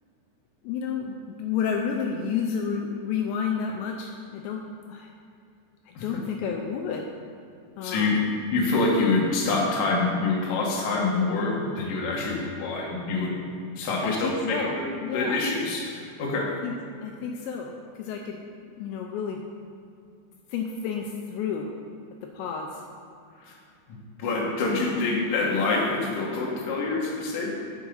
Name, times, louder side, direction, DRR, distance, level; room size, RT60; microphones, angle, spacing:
voice 1, 0.6-4.6 4.9-5.1 5.9-7.1 7.8-8.2 14.0-14.8 15.0-15.4 16.6-16.7 17.0-19.4 20.5-21.7 22.3-22.8 24.8-25.1, left 6 dB, 85° left, 1 dB, 2.7 m, -31 dB
voice 2, 7.8-8.2 8.5-13.3 13.7-14.8 15.1-16.5 23.4-23.6 23.9-27.5, left 3 dB, 60° left, -3 dB, 2.6 m, -26 dB
8.7 x 7.1 x 5.6 m, 2.4 s
omnidirectional pair, 5.2 m